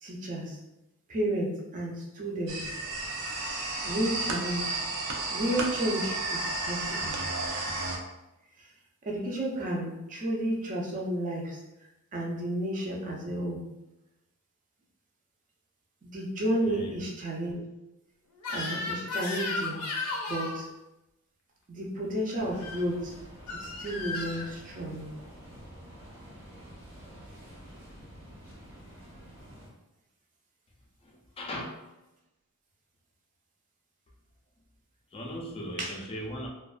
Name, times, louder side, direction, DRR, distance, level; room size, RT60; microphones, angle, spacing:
voice 1, 0.0-0.6 1.1-2.6 3.8-4.8 5.3-7.2 8.6-8.7 9.1-11.6 12.1-13.6 16.0-17.6 18.5-19.8 20.3-20.7 21.7-23.1 23.6-25.2 35.8-35.9, right 1 dB, 35° right, -2 dB, 0.5 m, -32 dB
sound 1, 2.5-8.0, right 2 dB, 85° right, 0.5 m, -32 dB
voice 2, 16.6-17.0 31.0-31.6 35.1-36.5, equal, 25° left, 0 dB, 0.4 m, -38 dB
Crying sobbing / Screech, 18.4-20.6 22.5-22.8 23.5-24.5, left 3 dB, 80° left, 0.5 m, -34 dB
sound 2, 22.4-29.7, equal, 60° right, 0.9 m, -48 dB
2.4 x 2.2 x 2.3 m, 0.97 s
head